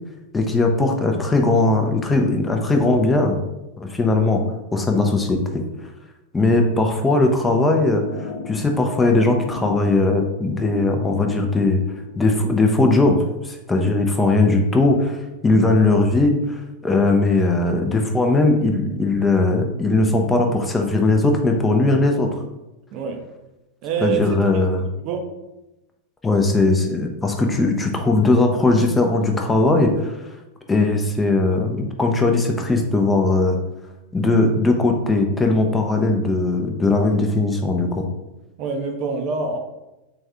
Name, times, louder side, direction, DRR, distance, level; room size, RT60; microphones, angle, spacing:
voice 1, 0.3-3.4 3.8-4.4 4.7-5.6 6.3-11.8 12.2-22.4 24.0-24.8 26.2-30.2 30.7-33.6 34.1-38.1, left 2 dB, 15° left, 3 dB, 0.5 m, -19 dB
sound 1, 7.9-12.5, left 4 dB, 75° left, 0.6 m, -35 dB
voice 2, 22.9-23.2 23.8-24.7 25.0-25.3 38.6-39.6, right 5 dB, 40° right, 4 dB, 0.5 m, -26 dB
3.5 x 3.5 x 3.3 m, 0.98 s
figure-of-eight pair, 90°, 0 cm